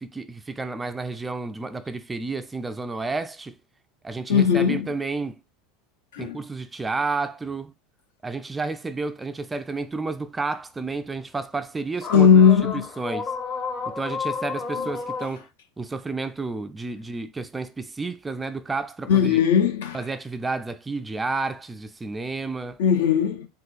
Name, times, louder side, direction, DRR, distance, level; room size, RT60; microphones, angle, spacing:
voice 1, 0.0-3.6 4.0-5.4 6.2-7.7 8.2-13.3 13.9-15.5 15.8-19.4 19.9-22.8, right 3 dB, 15° right, 0.3 m, -31 dB
voice 2, 4.3-4.9 6.1-6.4 12.1-12.8 19.1-20.0 22.8-23.5, left 7 dB, 60° left, 0.6 m, -18 dB
sound 1, 12.0-15.3, left 5 dB, 30° left, 0.8 m, -31 dB
3.6 x 2.8 x 2.4 m
figure-of-eight pair, 80°, 0 cm